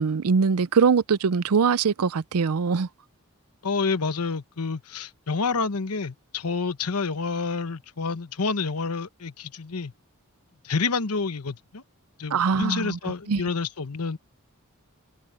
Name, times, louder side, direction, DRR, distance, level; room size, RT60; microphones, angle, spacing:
voice 1, 0.0-2.9 12.3-13.0 13.3-13.4, right 5 dB, 80° right, 0.5 m, -22 dB
voice 2, 3.6-9.9 10.6-11.8 12.2-14.2, left 4 dB, 90° left, 1.0 m, -28 dB
head